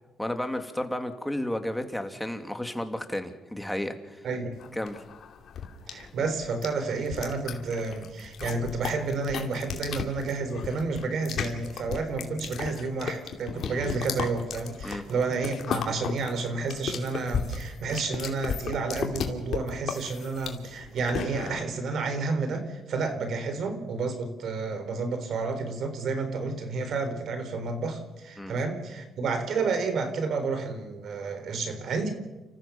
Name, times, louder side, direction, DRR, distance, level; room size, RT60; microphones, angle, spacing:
voice 1, 0.2-4.3 4.7-5.0 14.8-15.0 28.4-28.5, left 1 dB, 5° left, 7 dB, 2.5 m, -32 dB
voice 2, 4.2-4.6 5.9-32.1, right 4 dB, 70° right, 9 dB, 3.8 m, -30 dB
sound 1, 4.6-21.6, left 7 dB, 70° left, 2.7 m, -35 dB
30.0 x 14.5 x 7.2 m, 1.1 s
cardioid pair, 80°, 0 cm